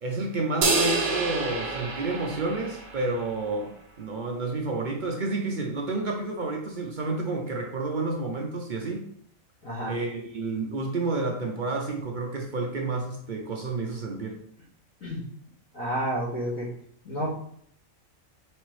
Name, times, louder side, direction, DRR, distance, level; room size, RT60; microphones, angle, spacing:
voice 1, 0.0-9.1 9.9-14.4, right 3 dB, 55° right, 1 dB, 0.5 m, -30 dB
sound 1, 0.6-3.2, right 3 dB, 80° right, 1.4 m, -27 dB
voice 2, 9.6-9.9 15.0-15.2 15.7-16.7 17.1-17.3, equal, 90° left, -11 dB, 2.0 m, -30 dB
4.2 x 4.0 x 3.1 m, 0.65 s
omnidirectional pair, 1.4 m